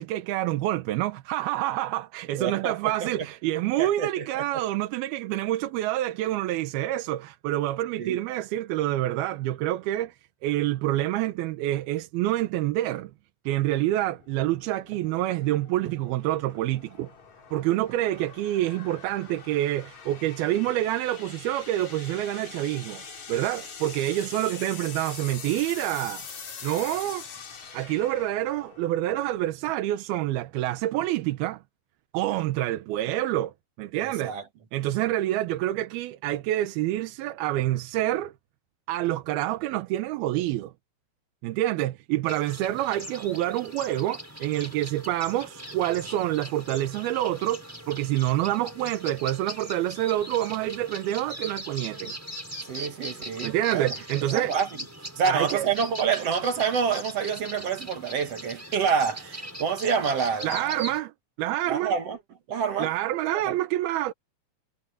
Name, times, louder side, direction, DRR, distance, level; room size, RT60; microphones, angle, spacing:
voice 1, 0.0-10.2 10.4-13.1 13.5-17.1 17.5-23.0 23.3-26.2 26.6-27.2 27.7-31.6 32.1-33.5 33.8-34.3 34.7-38.3 38.9-40.7 41.4-52.2 53.4-54.5 55.3-55.7 60.4-61.1 61.4-61.9 62.8-64.1, right 14 dB, 90° right, 2.9 m, -27 dB
voice 2, 2.4-3.3 3.8-4.6 8.0-8.2 34.0-34.4 52.7-53.9 54.3-54.8 55.2-60.8 61.7-62.2 62.5-62.9 63.5-63.6, right 6 dB, 50° right, 2.2 m, -28 dB
sound 1, 14.1-29.5, left 6 dB, 50° left, 4.2 m, -44 dB
sound 2, 42.2-61.0, right 1 dB, 5° right, 5.4 m, -40 dB
omnidirectional pair, 4.2 m